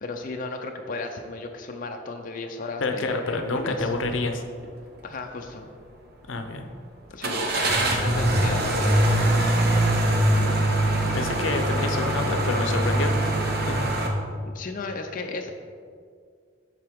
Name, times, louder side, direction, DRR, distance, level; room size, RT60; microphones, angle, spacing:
voice 1, 0.0-3.9 5.0-5.7 7.1-9.1 14.5-15.5, left 3 dB, 45° left, 3 dB, 0.5 m, -34 dB
voice 2, 2.8-4.4 6.3-6.7 10.4-10.6 11.1-13.1 13.6-13.8, left 2 dB, 85° left, 6 dB, 0.6 m, -28 dB
sound 1, 4.0-4.2 4.6-4.7 7.2-14.1, right 1 dB, 55° right, 0.9 m, -23 dB
7.7 x 5.8 x 3.6 m, 2.1 s
head